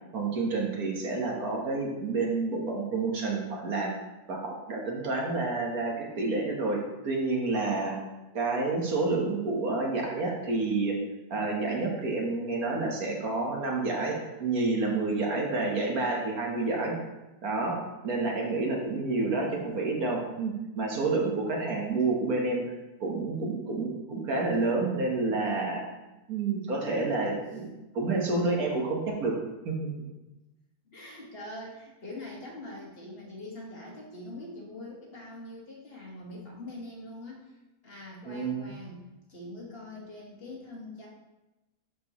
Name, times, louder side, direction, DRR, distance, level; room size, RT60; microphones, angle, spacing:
voice 1, 0.1-3.9 4.3-8.0 8.3-11.0 11.3-17.0 17.4-17.8 18.0-22.6 23.0-25.8 26.3-29.4 29.7-29.9 38.3-38.7, right 3 dB, 75° right, -1 dB, 1.8 m, -29 dB
voice 2, 19.2-19.8 30.8-37.5 37.8-39.0 39.3-41.1, left 1 dB, 40° left, -3 dB, 1.7 m, -43 dB
12.0 x 4.6 x 3.0 m, 1.0 s
omnidirectional pair, 1.6 m